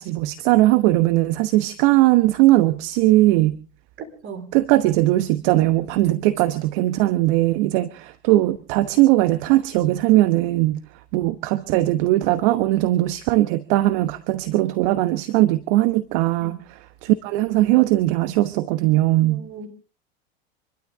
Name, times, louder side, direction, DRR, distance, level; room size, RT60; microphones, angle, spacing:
voice 1, 0.0-3.6 4.5-10.8 11.1-19.4, right 17 dB, 60° right, 13 dB, 1.1 m, -19 dB
voice 2, 4.2-4.5 16.4-16.6 19.2-19.7, right 4 dB, 40° right, 7 dB, 4.7 m, -37 dB
27.0 x 12.5 x 3.6 m, 0.37 s
hypercardioid pair, 100°, 30 cm